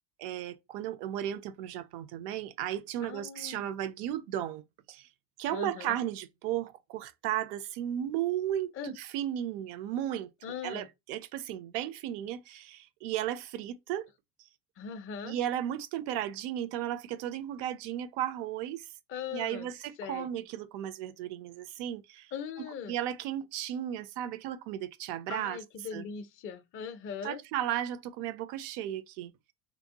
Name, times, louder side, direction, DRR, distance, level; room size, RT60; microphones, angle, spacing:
voice 1, 0.2-5.1 5.4-10.3 10.6-14.1 15.2-18.8 19.3-22.3 22.9-25.6 25.9-26.0 27.2-29.3, right 11 dB, 60° right, 0.6 m, -35 dB
voice 2, 3.0-3.7 5.5-6.0 8.7-8.9 10.4-10.9 14.8-15.4 19.1-19.7 20.0-20.3 22.3-23.0 25.3-27.4, left 7 dB, 30° left, 0.4 m, -40 dB
2.7 x 2.0 x 2.8 m
hypercardioid pair, 75°, 49 cm